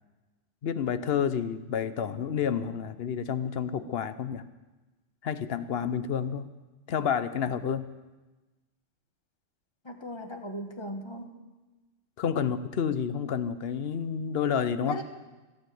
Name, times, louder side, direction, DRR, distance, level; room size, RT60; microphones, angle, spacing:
voice 1, 0.6-4.4 5.2-6.5 6.9-7.9 12.2-15.0, left 7 dB, 55° left, 12 dB, 0.9 m, -29 dB
voice 2, 9.8-11.3 14.8-15.0, equal, 25° left, 5 dB, 1.3 m, -38 dB
16.5 x 9.2 x 7.7 m, 1.2 s
omnidirectional pair, 1.3 m